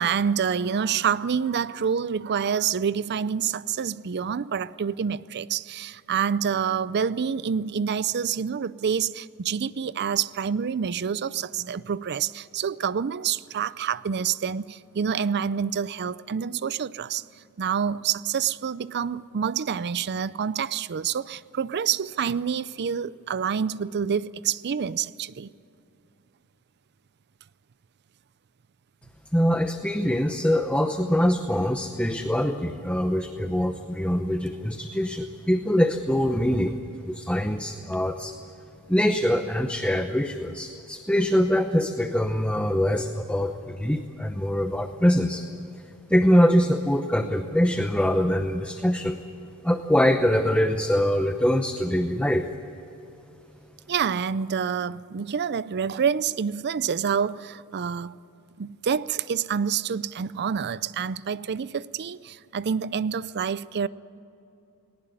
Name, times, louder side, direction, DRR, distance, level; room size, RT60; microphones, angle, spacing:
voice 1, 0.0-17.2 17.6-25.5 53.9-58.1 58.6-63.9, right 7 dB, 50° right, 0.5 m, -27 dB
voice 2, 29.3-36.8 37.1-38.3 38.9-45.5 46.1-49.2 49.6-52.5, equal, 5° left, 0.8 m, -23 dB
19.5 x 18.5 x 9.7 m
head